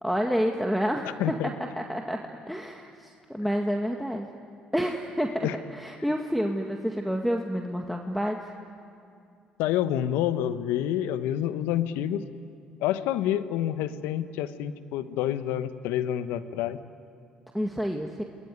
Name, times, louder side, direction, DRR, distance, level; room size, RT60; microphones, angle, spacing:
voice 1, 0.0-4.3 4.7-8.4 17.5-18.2, equal, ahead, 2 dB, 2.0 m, -29 dB
voice 2, 1.2-1.5 5.4-5.6 9.6-12.3 12.8-16.8, left 11 dB, 80° left, 12 dB, 1.1 m, -28 dB
28.5 x 20.5 x 9.5 m, 2.4 s
hypercardioid pair, 60°, 3 cm